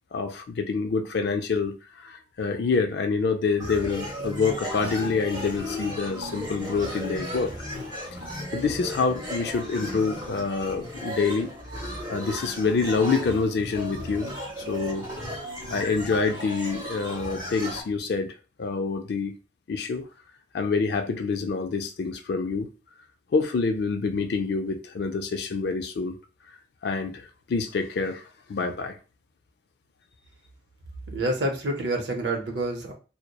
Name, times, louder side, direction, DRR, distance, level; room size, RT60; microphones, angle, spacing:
voice 1, 0.1-7.5 8.0-8.1 8.5-11.5 12.1-14.3 14.6-15.1 15.7-19.4 19.7-20.1 20.5-22.7 23.3-26.2 26.8-28.2 28.5-29.0, left 4 dB, 60° left, 0.3 m, -27 dB
sound 1, 3.6-17.8, equal, 20° right, 1.1 m, -35 dB
voice 2, 31.1-32.9, right 1 dB, 65° right, 0.6 m, -27 dB
2.7 x 2.0 x 2.2 m
head